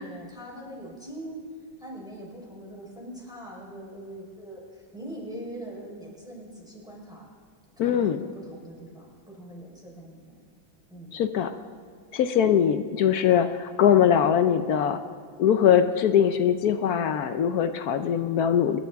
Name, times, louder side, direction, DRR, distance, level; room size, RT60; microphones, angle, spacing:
voice 1, 0.0-1.4 1.8-7.3 7.8-10.3 10.9-11.1, right 1 dB, ahead, -4 dB, 4.0 m, -42 dB
voice 2, 7.8-8.2 11.1-11.5 12.1-15.0 15.4-18.8, left 9 dB, 70° left, 10 dB, 0.9 m, -22 dB
26.5 x 12.0 x 3.5 m, 2.2 s
omnidirectional pair, 2.2 m